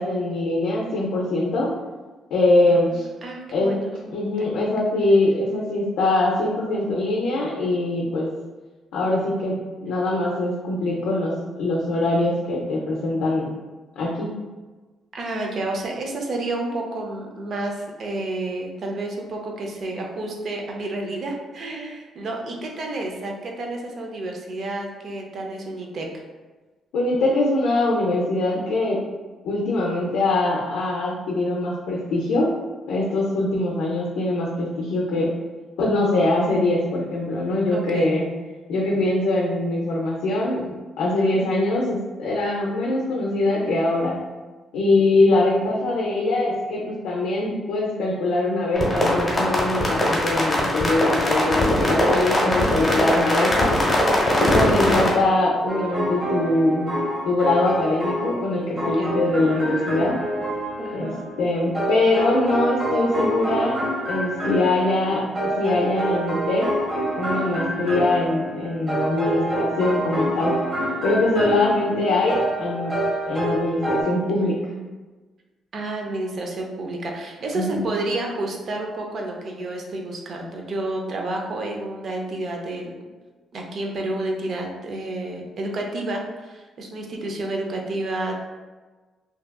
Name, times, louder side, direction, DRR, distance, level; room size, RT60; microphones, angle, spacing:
voice 1, 0.0-1.7 2.3-3.1 3.5-3.8 4.1-8.3 8.9-13.5 14.0-14.3 26.9-29.0 29.4-32.5 32.9-35.3 35.8-38.3 38.7-44.2 44.7-53.7 54.5-56.9 57.3-60.2 60.9-61.1 61.4-63.8 64.1-65.2 65.6-66.8 67.1-70.6 71.0-72.9 73.3-74.6 77.5-77.9, left 2 dB, 90° left, -3 dB, 0.4 m, -22 dB
voice 2, 3.2-4.5 15.1-26.2 37.7-38.1 41.2-41.5 58.8-59.2 60.8-61.2 75.7-83.0 83.5-88.3, right 2 dB, 55° right, 1 dB, 0.5 m, -30 dB
sound 1, 48.7-55.1, left 1 dB, 25° left, 0.8 m, -21 dB
sound 2, 55.7-58.4 58.8-74.0, right 1 dB, 35° right, 0.8 m, -27 dB
2.6 x 2.3 x 2.2 m, 1.3 s
cardioid pair, 90°, 0 cm